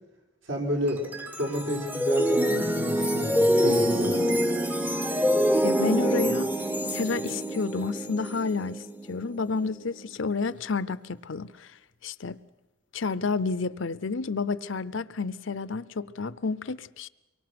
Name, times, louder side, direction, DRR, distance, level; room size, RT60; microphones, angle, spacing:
voice 1, 0.5-1.0 1.4-4.2, equal, 75° right, 4.8 m, -30 dB
sound 1, 0.9-10.1, equal, 10° right, 0.7 m, -26 dB
voice 2, 5.6-6.5 6.9-8.8 9.1-11.7 12.0-12.4 12.9-17.1, left 4 dB, 70° left, 0.7 m, -30 dB
25.0 x 23.0 x 6.1 m
head